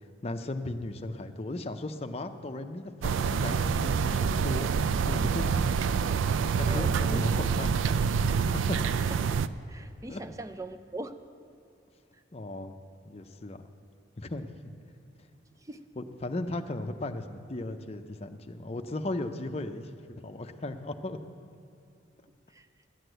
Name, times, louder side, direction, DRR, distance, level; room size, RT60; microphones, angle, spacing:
voice 1, 0.2-5.7 6.6-8.0 8.5-8.8 10.1-10.2 12.3-12.7 13.1-13.7 14.2-14.5 16.0-21.2, left 2 dB, 35° left, 7 dB, 0.5 m, -36 dB
sound 1, 3.0-9.5, right 6 dB, 85° right, 0.3 m, -27 dB
voice 2, 6.7-7.7 9.0-9.2 9.7-11.2 15.6-15.8 22.5-22.7, right 2 dB, 15° right, 10 dB, 0.4 m, -41 dB
11.5 x 8.1 x 7.9 m, 2.5 s
head